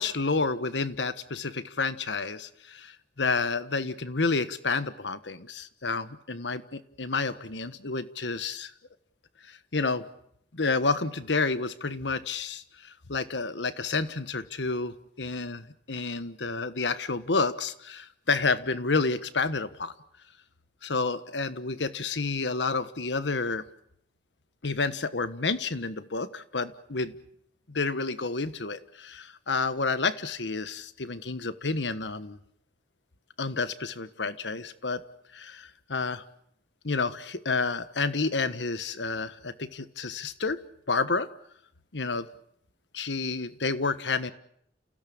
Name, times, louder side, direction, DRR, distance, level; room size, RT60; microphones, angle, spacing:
voice 1, 0.0-8.7 9.5-10.0 10.5-19.9 20.8-23.6 24.6-27.1 27.7-32.4 33.4-35.0 35.3-36.2 36.8-40.6 40.9-41.3 41.9-42.3 42.9-44.3, left 4 dB, 90° left, 13 dB, 1.4 m, -30 dB
29.0 x 16.5 x 8.7 m, 0.71 s
head